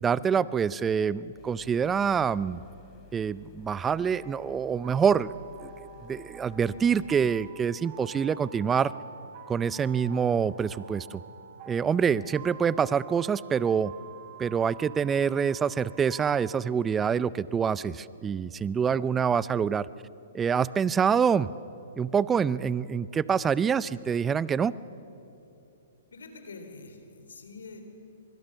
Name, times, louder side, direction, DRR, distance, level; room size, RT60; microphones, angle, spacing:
voice 1, 0.0-2.6 3.1-5.3 5.6-5.7 6.1-8.9 9.5-11.2 11.7-13.9 14.4-19.9 20.3-21.5 22.0-24.7, right 7 dB, 15° right, 19 dB, 0.5 m, -26 dB
sound 1, 1.4-7.5, left 4 dB, 30° left, 3.0 m, -54 dB
sound 2, 4.1-16.6, right 6 dB, 35° right, 2.0 m, -48 dB
voice 2, 26.1-27.8, left 3 dB, 80° left, 7 dB, 3.7 m, -45 dB
25.0 x 21.5 x 6.9 m, 2.9 s
hypercardioid pair, 125°, 0 cm